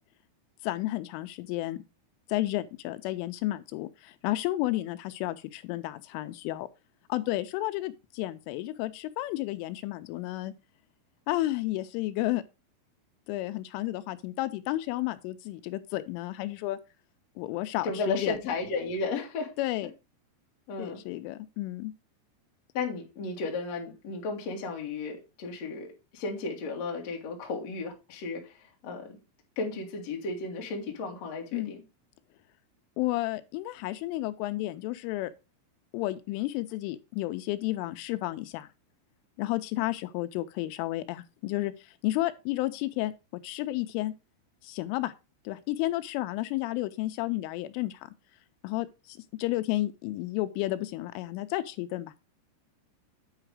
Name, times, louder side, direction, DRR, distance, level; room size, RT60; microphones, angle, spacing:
voice 1, 0.6-1.8 2.3-6.7 7.1-10.5 11.3-12.4 13.3-16.8 17.4-18.4 19.6-19.9 20.8-21.9 31.5-31.7 33.0-35.3 35.9-38.7 39.4-44.1 44.6-45.1 45.5-48.1 48.6-52.1, left 17 dB, 85° left, 3.0 m, -32 dB
voice 2, 17.8-19.5 20.7-21.0 22.7-29.2 29.5-31.8, left 3 dB, 60° left, 1.7 m, -34 dB
9.0 x 4.8 x 4.7 m
omnidirectional pair, 5.8 m